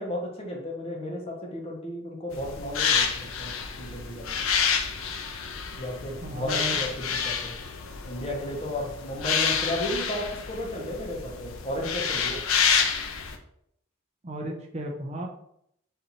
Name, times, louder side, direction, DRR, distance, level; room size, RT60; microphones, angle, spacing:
voice 1, 0.0-4.4 5.7-7.5 8.0-12.4, left 1 dB, 30° left, 0 dB, 0.9 m, -34 dB
sound 1, 2.3-13.4, left 6 dB, 85° left, 0.5 m, -29 dB
voice 2, 6.2-6.8 14.2-15.3, right 1 dB, 30° right, 1 dB, 0.5 m, -34 dB
4.4 x 2.6 x 4.0 m, 0.72 s
head